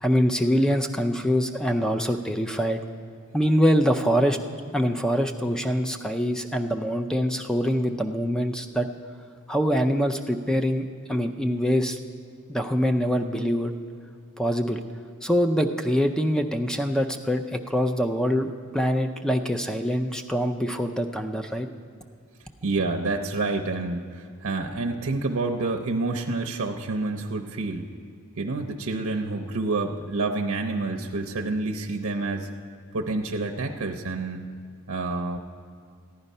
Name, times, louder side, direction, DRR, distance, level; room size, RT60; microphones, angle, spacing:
voice 1, 0.0-2.8 3.3-4.4 4.7-8.9 9.5-12.0 12.5-13.7 14.4-14.8 15.2-21.7, equal, 5° left, 5 dB, 0.5 m, -24 dB
voice 2, 22.6-27.9 28.4-32.5 32.9-34.5 34.9-35.4, right 3 dB, 60° right, 4 dB, 0.6 m, -28 dB
14.5 x 10.0 x 5.4 m, 2.1 s
head